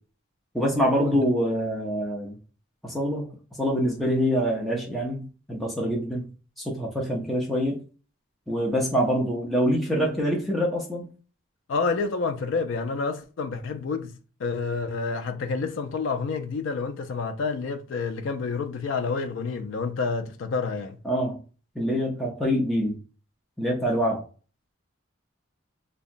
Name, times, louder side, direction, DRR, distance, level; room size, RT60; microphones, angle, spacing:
voice 1, 0.5-2.4 2.8-3.3 3.6-6.3 6.6-7.8 8.5-11.1 21.0-21.4 21.8-23.0 23.6-24.2, equal, ahead, 0.5 m, -25 dB
voice 2, 11.7-21.0, left 4 dB, 65° left, 0.3 m, -29 dB
2.8 x 2.2 x 2.5 m
head